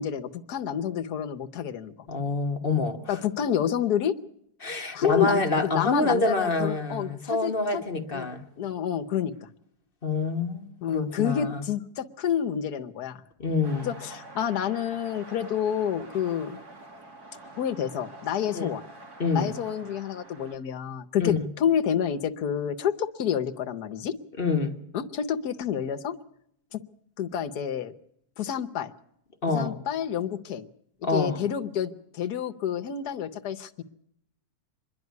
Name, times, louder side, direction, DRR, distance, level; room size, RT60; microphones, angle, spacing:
voice 1, 0.0-1.9 3.1-4.1 4.9-7.8 8.1-8.3 8.6-9.3 10.8-13.2 13.8-16.6 17.6-18.8 19.3-24.1 24.9-26.1 26.7-26.8 27.2-27.9 28.4-28.9 29.5-30.7 31.1-33.8, left 9 dB, 80° left, 1.5 m, -29 dB
voice 2, 2.1-3.2 4.6-8.4 10.0-11.6 13.4-13.9 18.5-18.7 19.2-19.6 21.2-21.5 24.4-24.8 29.4-29.7 31.0-31.4, left 3 dB, 35° left, 1.4 m, -27 dB
sound 1, 13.6-20.5, right 2 dB, 75° right, 3.2 m, -46 dB
25.5 x 11.0 x 9.3 m
omnidirectional pair, 1.7 m